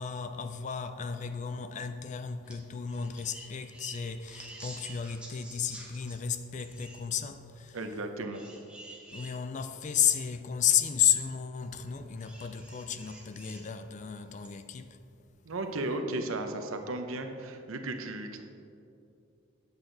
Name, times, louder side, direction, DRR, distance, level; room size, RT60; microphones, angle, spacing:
voice 1, 0.0-7.8 9.1-15.0, left 8 dB, 35° left, 0.3 m, -32 dB
sound 1, 2.4-2.6 2.9-6.2 6.6-7.0 8.3-9.3 10.1-10.2 12.2-13.7 14.4-14.5, right 1 dB, 5° right, 1.0 m, -48 dB
voice 2, 7.7-8.4 15.4-18.4, right 2 dB, 85° right, 0.7 m, -35 dB
8.1 x 7.8 x 3.9 m
head